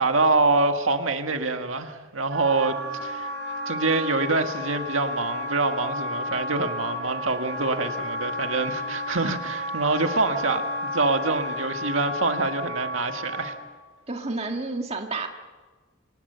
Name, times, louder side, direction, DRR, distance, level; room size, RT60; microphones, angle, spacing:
voice 1, 0.0-2.7 3.0-3.3 3.7-13.5, right 3 dB, 85° right, 6 dB, 1.8 m, -25 dB
Wind instrument woodwind instrument, 2.3-13.6, left 1 dB, 55° right, 5.1 m, -32 dB
voice 2, 14.1-15.3, right 3 dB, 30° right, 3 dB, 1.9 m, -30 dB
26.0 x 20.0 x 6.9 m, 1.4 s
head